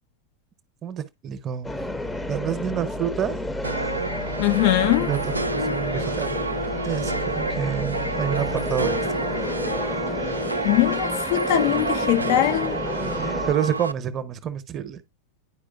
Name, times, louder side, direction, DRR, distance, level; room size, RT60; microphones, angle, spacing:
voice 1, 0.8-1.8 2.3-3.4 5.1-6.4 6.8-9.0 13.0-15.0, right 9 dB, 30° right, 0.8 m, -28 dB
sound 1, 1.6-13.5, left 1 dB, 5° left, 0.6 m, -31 dB
sound 2, 3.6-13.9, right 2 dB, 80° right, 0.4 m, -29 dB
voice 2, 4.4-5.1 10.6-12.8, left 15 dB, 50° left, 0.4 m, -21 dB
9.8 x 4.9 x 2.3 m
figure-of-eight pair, 90°, 0 cm